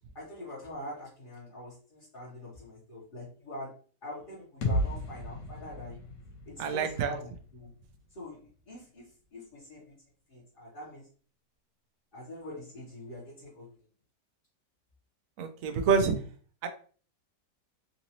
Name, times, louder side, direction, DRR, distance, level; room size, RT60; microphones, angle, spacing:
voice 1, 0.1-3.7 4.0-6.0 6.5-7.7 8.1-9.9 10.3-11.1 12.1-13.7, left 1 dB, 35° left, -8 dB, 1.2 m, -44 dB
sound 1, 4.6-8.5, left 1 dB, 85° left, 1.5 m, -35 dB
voice 2, 6.6-7.1 15.4-16.1 16.6-16.7, right 6 dB, 65° right, 7 dB, 0.9 m, -27 dB
4.0 x 2.6 x 2.9 m, 0.42 s
omnidirectional pair, 1.9 m